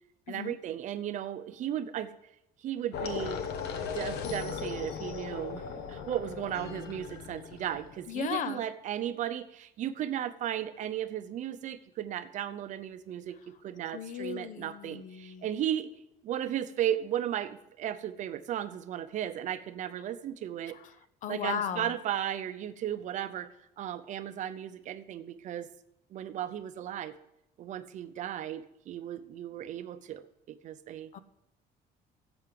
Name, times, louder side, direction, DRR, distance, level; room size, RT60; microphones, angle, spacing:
voice 1, 0.3-2.1 2.6-3.4 3.8-5.6 5.9-15.9 16.2-20.8 21.3-23.5 23.8-25.7 26.1-27.1 27.6-30.2 30.5-31.1, right 11 dB, 50° right, 11 dB, 0.7 m, -35 dB
sound 1, 2.9-8.1, left 6 dB, 80° left, 1.2 m, -37 dB
voice 2, 8.1-8.6 13.9-15.4 21.2-21.9 31.1-31.2, left 8 dB, 50° left, 14 dB, 0.7 m, -36 dB
10.5 x 7.9 x 7.7 m, 0.84 s
cardioid pair, 180°, 17 cm